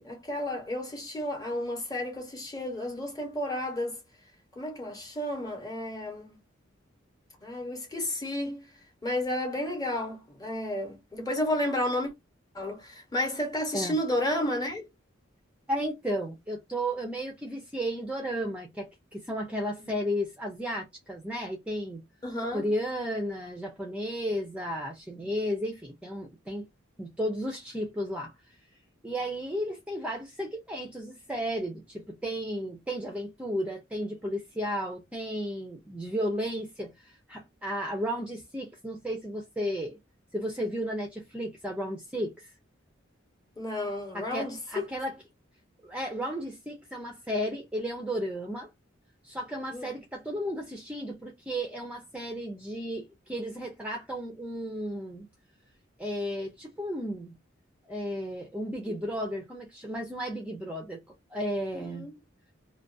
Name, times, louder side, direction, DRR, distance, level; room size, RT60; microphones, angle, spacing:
voice 1, 0.0-4.0 4.5-6.4 7.4-8.7 9.0-12.1 12.5-14.9 19.8-19.9 22.2-22.6 43.6-44.8 49.7-49.9 61.7-62.1, left 1 dB, 20° left, 0.9 m, -32 dB
voice 2, 15.7-22.0 22.5-26.7 27.0-28.6 29.0-40.0 40.3-42.5 44.1-45.2 45.8-48.7 49.2-55.3 56.0-57.4 57.9-61.0 61.3-62.1, equal, 5° right, 0.4 m, -33 dB
2.4 x 2.2 x 2.5 m
head